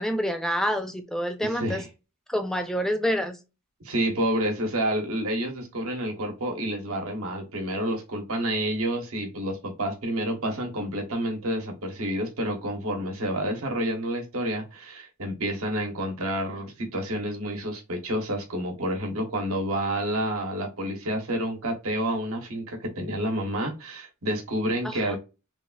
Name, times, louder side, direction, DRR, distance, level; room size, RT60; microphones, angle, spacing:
voice 1, 0.0-1.8 2.3-3.4 24.8-25.2, equal, ahead, 0.4 m, -27 dB
voice 2, 1.5-1.9 3.8-25.2, right 1 dB, 80° right, 1.0 m, -29 dB
3.3 x 2.3 x 2.2 m
head